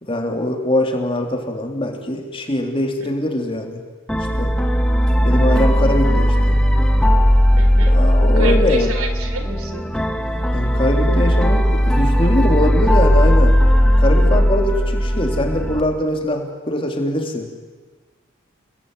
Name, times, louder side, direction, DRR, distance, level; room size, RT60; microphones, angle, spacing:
voice 1, 0.0-3.8 4.3-4.5 5.3-6.6 7.8-8.9 10.5-13.6 14.0-17.5, left 1 dB, 25° left, 3 dB, 3.3 m, -22 dB
sound 1, 4.1-15.8, equal, 5° left, 1.9 m, -16 dB
voice 2, 7.6-8.0 8.4-9.9, right 2 dB, 85° right, 8 dB, 3.8 m, -28 dB
30.0 x 21.0 x 9.3 m, 1.4 s
head